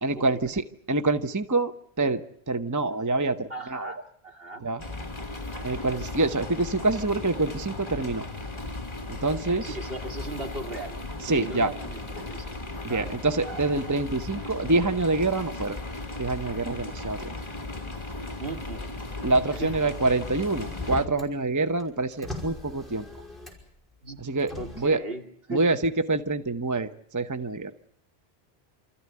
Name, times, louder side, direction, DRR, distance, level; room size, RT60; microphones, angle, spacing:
voice 1, 0.0-2.2 2.5-3.9 4.6-4.8 5.6-8.3 9.1-9.8 11.2-11.7 12.8-15.8 16.2-17.3 19.2-23.0 24.2-25.0 25.5-27.7, right 2 dB, 20° right, 9 dB, 0.9 m, -26 dB
voice 2, 3.5-4.6 9.6-11.0 11.3-12.5 12.9-13.1 18.4-18.9 19.6-19.7 24.0-24.2 24.6-25.2 25.5-25.6, right 2 dB, 65° right, 2 dB, 2.8 m, -37 dB
sound 1, 4.8-21.1, left 2 dB, 25° left, 1.8 m, -36 dB
Motor vehicle (road), 19.7-21.3 21.7-23.8 24.4-24.9, left 2 dB, ahead, 5.4 m, -39 dB
28.5 x 14.5 x 9.6 m, 0.69 s
omnidirectional pair, 1.1 m